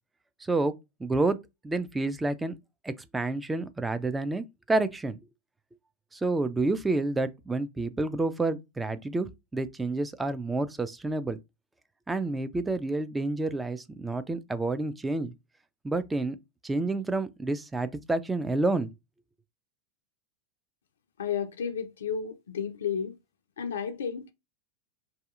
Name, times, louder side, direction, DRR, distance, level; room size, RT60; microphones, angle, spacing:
voice 1, 1.0-1.4 1.6-2.5 2.8-5.2 6.1-11.4 12.1-15.3 15.8-16.4 16.6-18.9, right 2 dB, 10° right, 0.4 m, -29 dB
voice 2, 21.2-23.2 23.6-24.3, left 7 dB, 80° left, 0.3 m, -32 dB
2.7 x 2.2 x 2.4 m
hypercardioid pair, 95°, 0 cm